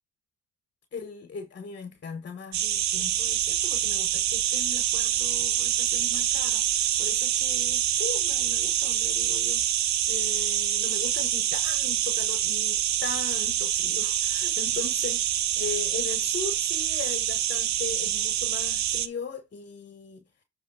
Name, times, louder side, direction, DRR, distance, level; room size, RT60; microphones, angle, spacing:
voice 1, 0.9-15.2 15.6-20.2, left 5 dB, 35° left, 1.0 m, -39 dB
sound 1, 2.5-19.1, right 11 dB, 65° right, 0.7 m, -26 dB
7.9 x 3.1 x 5.6 m
cardioid pair, 90°, 30 cm